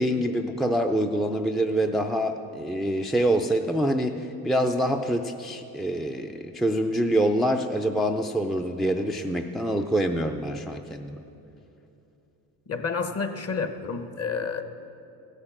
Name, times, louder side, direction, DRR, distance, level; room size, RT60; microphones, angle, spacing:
voice 1, 0.0-11.2, right 1 dB, ahead, 5 dB, 0.4 m, -25 dB
voice 2, 12.7-14.6, left 5 dB, 35° left, 8 dB, 1.0 m, -30 dB
16.0 x 6.7 x 7.2 m, 2.8 s
supercardioid pair, 85°, 42 cm